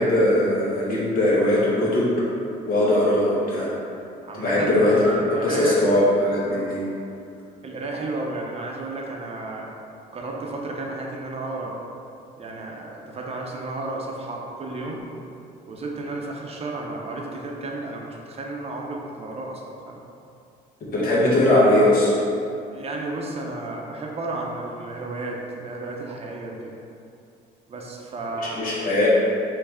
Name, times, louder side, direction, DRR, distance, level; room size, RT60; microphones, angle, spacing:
voice 1, 0.0-2.1 2.7-3.7 4.3-6.8 20.9-22.1 28.4-29.1, left 1 dB, 60° left, -7 dB, 1.4 m, -20 dB
voice 2, 4.2-5.8 7.6-9.7 10.1-11.7 12.4-15.0 15.7-20.0 22.7-26.7 27.7-28.6, right 2 dB, 35° right, -1 dB, 0.6 m, -32 dB
3.3 x 3.1 x 4.8 m, 2.6 s
cardioid pair, 110°, 17 cm